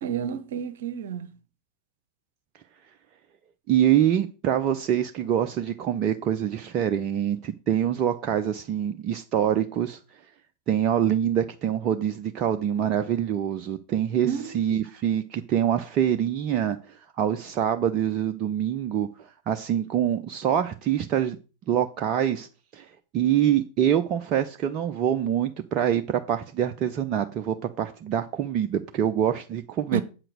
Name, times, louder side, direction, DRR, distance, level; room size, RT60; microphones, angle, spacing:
voice 1, 0.0-1.3 14.2-14.8 29.9-30.0, right 8 dB, 60° right, 1.1 m, -31 dB
voice 2, 3.7-10.0 10.7-14.3 14.5-19.1 19.5-21.4 21.7-22.5 22.7-22.9 23.1-30.0, right 10 dB, 35° right, 0.6 m, -25 dB
8.0 x 5.9 x 6.4 m
figure-of-eight pair, 90°, 0 cm